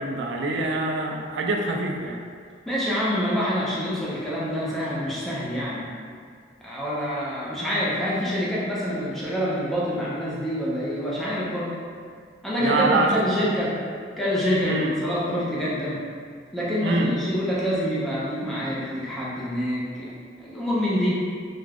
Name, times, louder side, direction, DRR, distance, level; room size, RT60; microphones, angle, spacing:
voice 1, 0.0-2.2 12.6-13.1 14.6-14.9 16.8-17.1, right 2 dB, 75° right, 1 dB, 0.3 m, -25 dB
voice 2, 2.7-5.9 6.6-11.8 12.4-13.8 14.2-16.0 16.5-20.1 20.4-21.3, equal, ahead, -8 dB, 0.5 m, -26 dB
2.4 x 2.2 x 3.3 m, 2.1 s
head